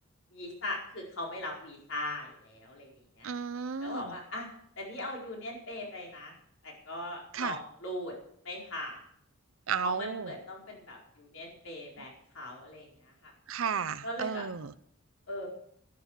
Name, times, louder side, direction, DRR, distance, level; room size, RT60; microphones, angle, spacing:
voice 1, 0.3-2.9 3.2-3.3 3.8-4.5 4.8-6.4 6.6-8.1 8.4-9.0 9.8-13.3 14.0-14.5 15.3-15.5, left 1 dB, 80° left, -1 dB, 4.7 m, -39 dB
voice 2, 3.2-4.1 7.3-7.6 9.7-10.3 13.5-14.7, right 6 dB, 80° right, 13 dB, 0.6 m, -33 dB
11.5 x 11.5 x 6.5 m, 0.66 s
head